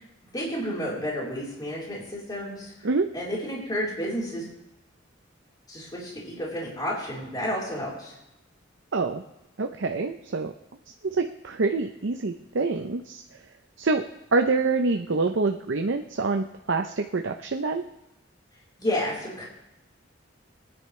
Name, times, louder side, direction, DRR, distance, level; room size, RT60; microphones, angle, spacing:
voice 1, 0.3-2.9 3.1-4.4 5.7-8.1 18.8-19.4, equal, 20° left, -5 dB, 4.0 m, -31 dB
voice 2, 8.9-9.2 9.6-10.5 11.0-13.2 13.8-14.0 14.3-17.8, right 3 dB, 65° right, 5 dB, 0.6 m, -26 dB
22.0 x 10.0 x 3.2 m, 0.90 s
head